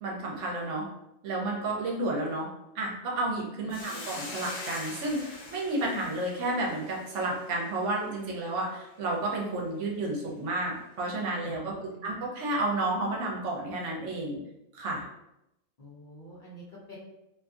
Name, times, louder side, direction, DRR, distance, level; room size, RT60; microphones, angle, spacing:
voice 1, 0.0-0.9 1.2-2.5 2.7-14.4 14.7-15.0, right 2 dB, 70° right, -2 dB, 0.9 m, -31 dB
Hiss, 3.7-8.2, left 2 dB, 70° left, 1.0 m, -43 dB
voice 2, 3.7-4.0 11.5-12.1 12.4-12.5 15.8-17.0, right 1 dB, 45° left, -8 dB, 0.8 m, -47 dB
2.5 x 2.5 x 2.3 m, 0.87 s
omnidirectional pair, 1.3 m